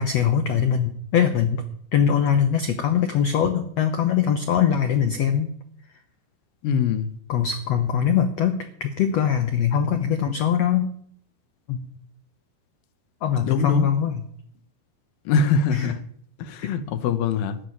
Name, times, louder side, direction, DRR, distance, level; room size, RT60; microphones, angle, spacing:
voice 1, 0.0-1.6 1.9-5.5 7.3-10.9 11.7-11.9 13.2-14.2 15.7-15.9 16.6-16.7, left 8 dB, 90° left, 1.4 m, -22 dB
voice 2, 6.6-7.1 13.5-13.9 15.3-16.0 16.4-17.6, left 5 dB, 75° left, 2.6 m, -23 dB
14.5 x 6.4 x 9.9 m
omnidirectional pair, 4.5 m